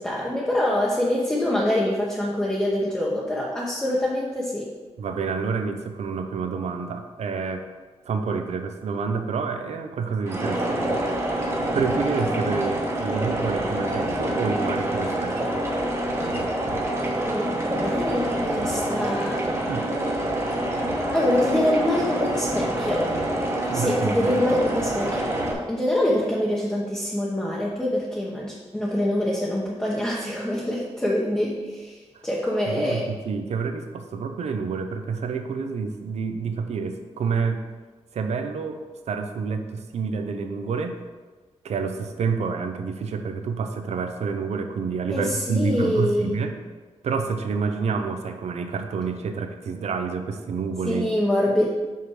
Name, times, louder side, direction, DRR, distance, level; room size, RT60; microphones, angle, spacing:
voice 1, 0.0-4.7 17.2-17.5 17.8-19.4 21.1-23.1 23.7-25.3 25.7-33.1 45.1-46.4 50.8-51.7, left 1 dB, 5° left, -5 dB, 0.9 m, -25 dB
voice 2, 5.0-7.7 8.0-11.3 11.7-15.6 19.7-19.9 23.7-24.6 32.1-32.3 32.7-37.6 38.1-38.8 39.1-41.0 41.6-46.6 47.0-51.2, right 5 dB, 75° right, 7 dB, 0.7 m, -28 dB
sound 1, 10.3-25.5, right 1 dB, 25° right, 1.1 m, -26 dB
5.9 x 5.6 x 4.8 m, 1.3 s
wide cardioid pair, 145°, 11 cm